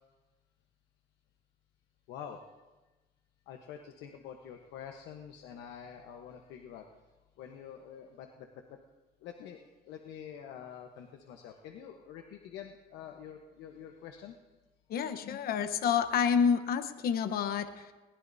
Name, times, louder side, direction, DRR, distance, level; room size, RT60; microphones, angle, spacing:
voice 1, 2.1-2.4 3.5-6.9 7.4-8.8 9.2-14.4, left 8 dB, 90° left, 4 dB, 1.1 m, -47 dB
voice 2, 14.9-17.9, left 7 dB, 65° left, 9 dB, 1.0 m, -29 dB
21.0 x 19.5 x 2.7 m, 1.2 s
cardioid pair, 110°, 17 cm